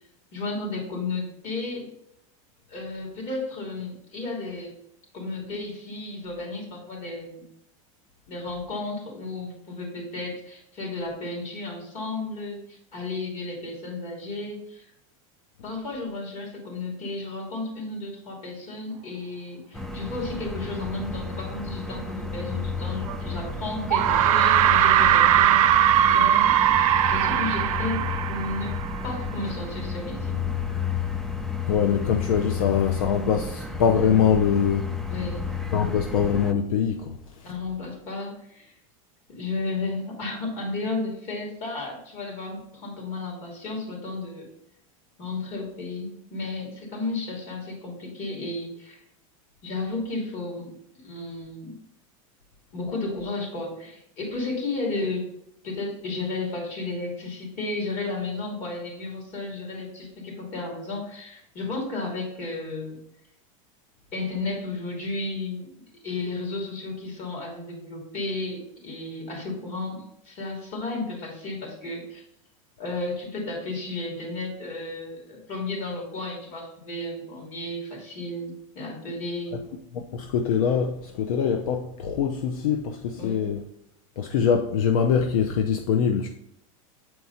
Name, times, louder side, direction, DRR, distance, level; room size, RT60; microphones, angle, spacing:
voice 1, 0.3-1.9 2.7-4.7 5.1-7.4 8.3-14.8 15.6-26.6 27.1-30.4 35.1-35.5 37.4-38.7 39.3-44.5 45.2-49.0 49.6-51.7 52.7-55.3 55.6-63.0 64.1-65.7 66.0-72.2 72.8-79.6 83.2-83.4, left 2 dB, 45° left, 3.0 m, -33 dB
sound 1, 19.7-36.5, left 5 dB, ahead, 0.5 m, -32 dB
sound 2, 23.1-23.2 23.9-29.1, right 11 dB, 80° right, 0.6 m, -20 dB
voice 2, 31.7-35.0 35.7-37.5 79.5-79.6 79.9-83.6 84.2-86.3, left 7 dB, 80° left, 0.7 m, -23 dB
8.0 x 4.6 x 4.2 m
supercardioid pair, 130°, 18 cm